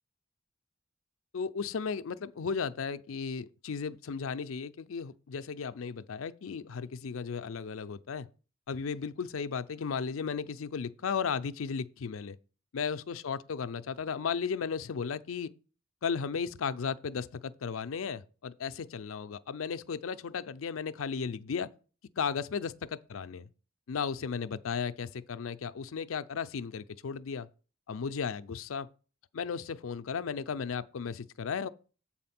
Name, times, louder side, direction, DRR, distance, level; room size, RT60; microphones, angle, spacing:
voice 1, 1.3-8.3 8.7-12.4 12.7-15.5 16.0-21.7 22.2-23.5 23.9-27.5 27.9-28.9 29.3-31.7, left 6 dB, 85° left, 0.5 m, -35 dB
7.7 x 4.3 x 5.8 m
head